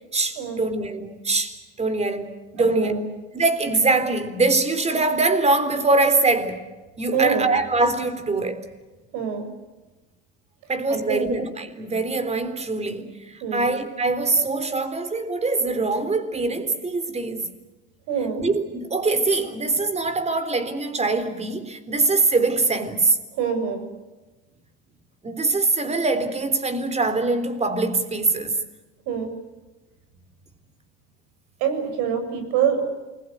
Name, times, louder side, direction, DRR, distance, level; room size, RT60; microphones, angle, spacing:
voice 1, 0.1-3.0 3.3-6.6 7.0-8.6 10.7-17.5 18.3-23.2 25.2-28.6, right 3 dB, 20° right, 3.7 m, -23 dB
voice 2, 2.6-3.0 7.1-7.5 9.1-9.5 10.9-11.3 13.4-13.7 18.1-18.4 23.3-23.9 29.1-29.3 31.6-32.9, right 7 dB, 65° right, 7.3 m, -25 dB
28.5 x 21.5 x 8.1 m
supercardioid pair, 110°, 33 cm